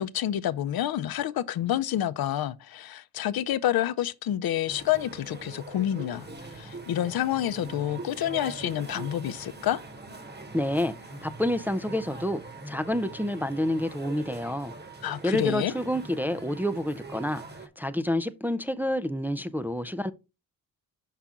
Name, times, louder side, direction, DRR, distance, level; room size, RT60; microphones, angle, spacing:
voice 1, 0.0-9.8 15.0-15.7, left 12 dB, 70° left, 0.6 m, -28 dB
sound 1, 4.7-17.7, right 3 dB, 25° right, 1.2 m, -43 dB
voice 2, 10.5-10.9 11.2-14.7 15.2-17.4 17.8-20.1, left 1 dB, 5° right, 0.4 m, -28 dB
5.9 x 5.7 x 3.7 m
cardioid pair, 95°, 38 cm